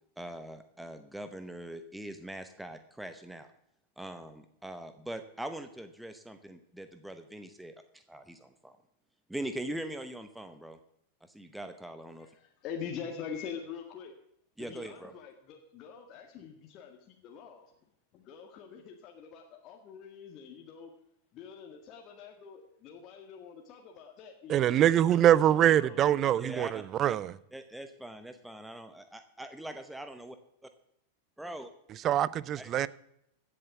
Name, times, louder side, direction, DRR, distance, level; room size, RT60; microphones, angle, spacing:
voice 1, 0.2-3.5 4.0-8.8 9.3-10.8 11.2-12.3 14.6-15.1 26.3-27.2 27.5-30.4 31.4-31.7 32.5-32.9, right 1 dB, 5° right, 0.9 m, -42 dB
voice 2, 12.2-14.1 14.6-17.7 18.1-20.9 21.3-26.5, left 7 dB, 40° left, 1.8 m, -45 dB
voice 3, 24.5-27.3 32.0-32.9, right 11 dB, 35° right, 0.5 m, -24 dB
16.0 x 7.6 x 7.1 m
figure-of-eight pair, 95°, 0 cm